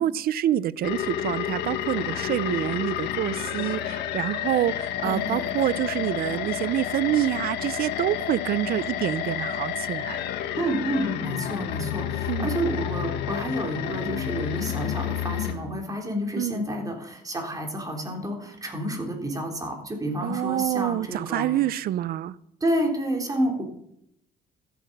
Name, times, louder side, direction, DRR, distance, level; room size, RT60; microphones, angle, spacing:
voice 1, 0.0-10.2 12.3-12.5 16.4-16.6 20.2-22.3, right 12 dB, 65° right, 0.6 m, -27 dB
sound 1, 0.8-15.5, left 10 dB, 80° left, 1.6 m, -30 dB
voice 2, 5.0-5.5 10.6-21.5 22.6-23.6, right 1 dB, 20° right, 3.5 m, -29 dB
13.5 x 9.3 x 6.6 m
cardioid pair, 110°, 17 cm